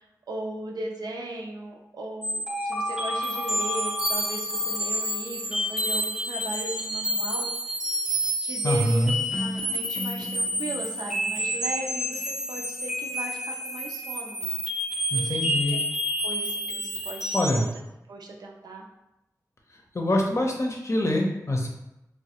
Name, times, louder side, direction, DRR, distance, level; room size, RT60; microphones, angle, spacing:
voice 1, 0.0-7.5 8.4-14.5 15.1-15.4 15.7-15.8 16.2-17.7 18.1-18.8, right 2 dB, 90° right, 0 dB, 0.4 m, -37 dB
sound 1, 2.2-17.7, equal, 10° right, 0.5 m, -29 dB
voice 2, 8.6-9.2 15.1-15.8 17.3-17.7 19.9-21.7, left 1 dB, 45° left, 1 dB, 0.6 m, -24 dB
3.1 x 2.1 x 2.8 m, 0.91 s
cardioid pair, 45°, 7 cm